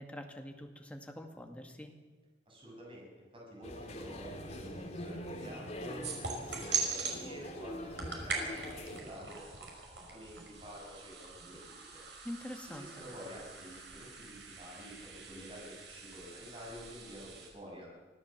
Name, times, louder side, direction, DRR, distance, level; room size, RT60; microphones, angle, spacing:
voice 1, 0.0-1.9 12.2-12.9, left 1 dB, 10° left, 3 dB, 2.1 m, -45 dB
voice 2, 2.5-12.1 12.7-17.9, equal, 30° right, -2 dB, 7.2 m, -49 dB
sound 1, 3.6-9.0, equal, 40° left, 2.7 m, -43 dB
sound 2, 6.0-7.2 7.8-17.5, right 5 dB, 80° right, 5.5 m, -41 dB
24.5 x 16.0 x 7.4 m, 1.3 s
head